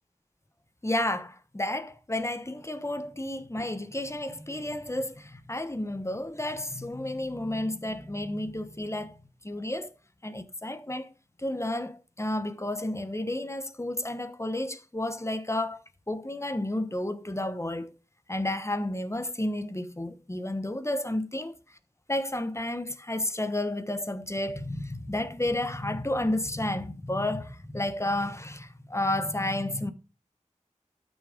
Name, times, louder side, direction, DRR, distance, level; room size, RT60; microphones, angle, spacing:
voice 1, 0.8-9.2 9.4-9.9 10.2-11.1 11.4-17.9 18.3-21.5 22.1-29.9, left 1 dB, 20° left, 1.1 m, -31 dB
12.5 x 6.5 x 5.1 m
wide cardioid pair, 55°, 13 cm